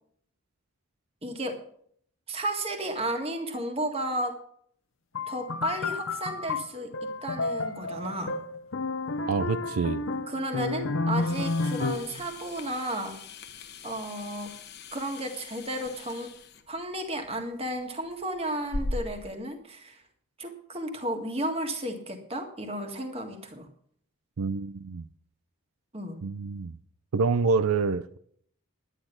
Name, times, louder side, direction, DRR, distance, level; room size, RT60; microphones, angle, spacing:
voice 1, 1.2-1.6 2.3-4.4 5.3-8.4 10.3-13.2 13.8-14.5 14.9-16.3 16.7-20.0 20.4-23.7 25.9-26.2, right 1 dB, 25° right, 1.7 m, -33 dB
sound 1, 5.1-12.2, left 3 dB, 65° left, 0.7 m, -31 dB
voice 2, 9.3-10.0 24.4-25.1 26.2-26.7 27.1-28.2, right 4 dB, 80° right, 0.5 m, -27 dB
sound 2, 11.1-19.3, left 2 dB, 50° left, 1.1 m, -41 dB
11.0 x 10.0 x 5.9 m
head